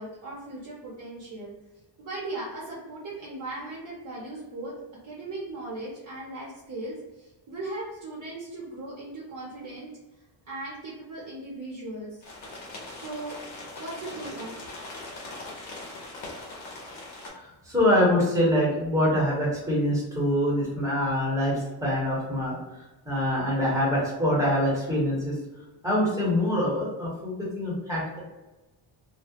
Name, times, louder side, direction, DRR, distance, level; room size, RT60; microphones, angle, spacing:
voice 1, 0.0-1.5 2.0-4.7 5.0-9.9 10.5-12.2 12.9-13.4 13.8-14.6, right 2 dB, 45° right, -5 dB, 0.5 m, -38 dB
sound 1, 12.2-17.3, left 2 dB, 85° left, 0.9 m, -41 dB
voice 2, 17.4-22.6 23.1-25.3 25.8-28.2, left 1 dB, 5° right, -6 dB, 0.9 m, -25 dB
2.3 x 2.0 x 2.7 m, 1.1 s
wide cardioid pair, 165°, 46 cm